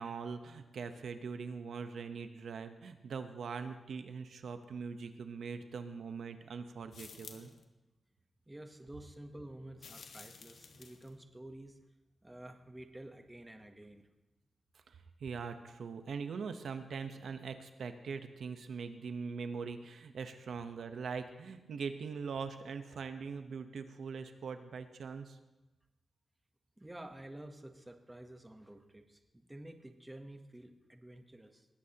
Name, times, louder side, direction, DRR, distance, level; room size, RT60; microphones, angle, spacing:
voice 1, 0.0-7.5 14.9-25.4, right 5 dB, 80° right, 8 dB, 0.9 m, -42 dB
sound 1, 6.9-7.6 9.8-11.1, left 5 dB, 80° left, 1.3 m, -52 dB
voice 2, 8.5-11.8 12.2-14.1 26.8-31.7, right 1 dB, 10° right, 6 dB, 1.0 m, -50 dB
20.5 x 16.0 x 2.9 m, 1.1 s
wide cardioid pair, 150°, 0 cm